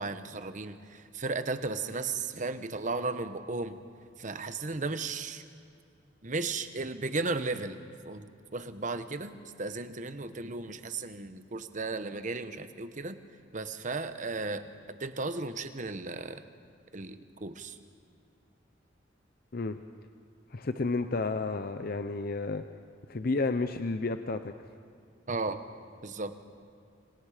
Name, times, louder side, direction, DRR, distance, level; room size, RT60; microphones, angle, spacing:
voice 1, 0.0-3.8 4.2-5.4 6.2-7.8 8.0-13.2 13.5-14.6 15.0-16.4 16.9-17.8 25.3-25.6 26.0-26.4, right 3 dB, 40° right, 10 dB, 1.1 m, -35 dB
voice 2, 20.5-22.6 23.1-24.5, left 3 dB, 50° left, 9 dB, 0.6 m, -31 dB
27.0 x 27.0 x 5.0 m, 2.4 s
head